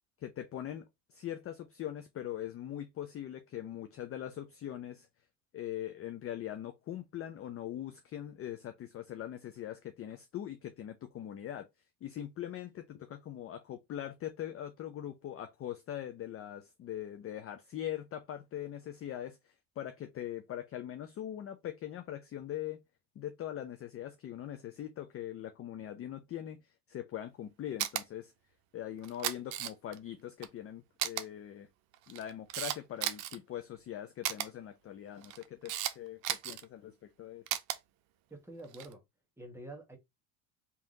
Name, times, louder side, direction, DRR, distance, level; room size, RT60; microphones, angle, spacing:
voice 1, 0.2-5.1 5.5-11.7 12.0-19.4 19.8-22.8 23.2-26.6 26.9-28.3 28.7-31.7 32.1-37.4, left 11 dB, 30° left, 0.4 m, -41 dB
Camera, 27.8-28.0 29.0-30.0 30.4-30.5 31.0-31.2 31.9-33.4 34.2-34.5 35.2-35.9 36.2-36.6 37.5-37.8 38.6-38.9, right 13 dB, 70° right, 0.7 m, -34 dB
voice 2, 38.3-39.0 39.4-40.0, right 1 dB, 5° right, 1.2 m, -47 dB
3.5 x 2.8 x 3.7 m
supercardioid pair, 110°, 47 cm